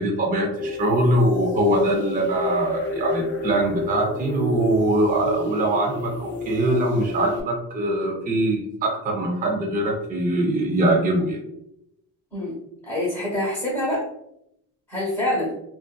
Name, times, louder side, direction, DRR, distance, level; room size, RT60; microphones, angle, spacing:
voice 1, 0.0-11.4, right 1 dB, 25° right, 0 dB, 0.5 m, -22 dB
sound 1, 0.6-7.4, left 2 dB, 30° left, 0.4 m, -30 dB
voice 2, 12.8-14.0 14.9-15.5, left 1 dB, 5° left, -8 dB, 1.0 m, -25 dB
2.5 x 2.5 x 2.2 m, 0.80 s
cardioid pair, 125°, 38 cm